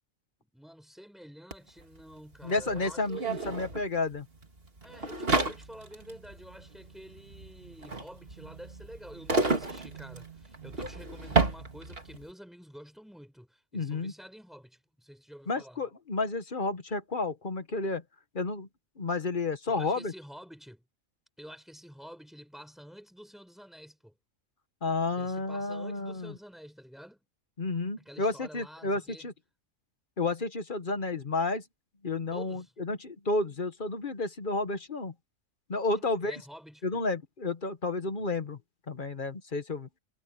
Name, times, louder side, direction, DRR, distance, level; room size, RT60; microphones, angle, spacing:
voice 1, 0.4-3.6 4.8-15.8 19.7-20.9 21.4-24.2 25.2-27.3 28.0-29.3 32.3-32.7 35.9-37.0, equal, ahead, 5.6 m, -49 dB
sound 1, 1.5-1.6 1.8-12.2, right 3 dB, 45° right, 2.7 m, -32 dB
voice 2, 2.4-4.3 13.7-14.1 15.5-18.0 18.3-18.7 19.0-20.1 24.8-26.3 27.6-29.3 30.2-31.6 32.0-35.1 35.7-36.4 36.8-38.6 38.9-39.9, left 3 dB, 40° left, 1.4 m, -31 dB
omnidirectional pair, 1.4 m